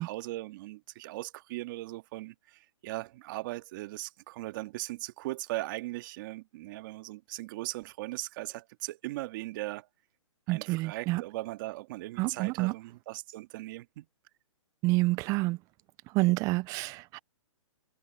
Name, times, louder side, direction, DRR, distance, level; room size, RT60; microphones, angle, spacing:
voice 1, 0.0-9.9 10.5-14.1, right 18 dB, 35° right, 1.9 m, -39 dB
voice 2, 10.5-11.2 12.2-12.7 14.8-15.6 16.1-17.2, right 21 dB, 20° right, 0.5 m, -28 dB
hypercardioid pair, 145°, 18 cm